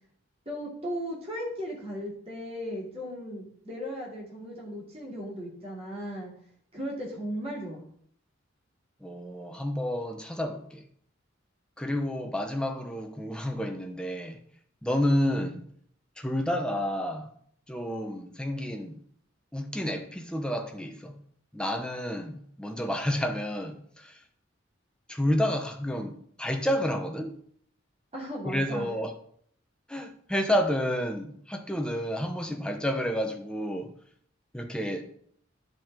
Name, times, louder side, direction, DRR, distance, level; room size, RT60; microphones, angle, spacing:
voice 1, 0.5-6.3 6.7-7.8 28.1-28.9, equal, 30° right, 2.8 m, -36 dB
voice 2, 9.0-10.8 11.8-14.4 14.8-15.6 16.2-17.3 17.7-19.0 19.5-21.2 21.5-24.2 25.1-27.3 28.4-29.2 29.9-33.9 34.5-35.1, equal, 5° left, 0.8 m, -30 dB
10.5 x 5.3 x 3.7 m
head